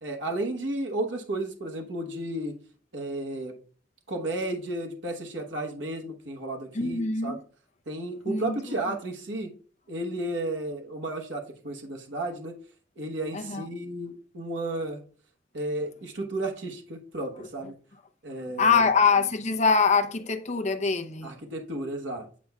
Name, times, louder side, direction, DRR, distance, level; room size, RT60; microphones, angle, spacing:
voice 1, 0.0-2.5 2.9-3.5 4.1-7.4 7.9-9.5 9.9-12.5 13.0-15.0 15.5-17.8 18.2-18.9 21.2-22.3, right 1 dB, 75° right, 1.0 m, -33 dB
voice 2, 6.7-7.4 8.3-8.9 13.3-13.6 18.4-21.3, left 5 dB, 40° left, 0.6 m, -24 dB
8.5 x 5.4 x 2.3 m
head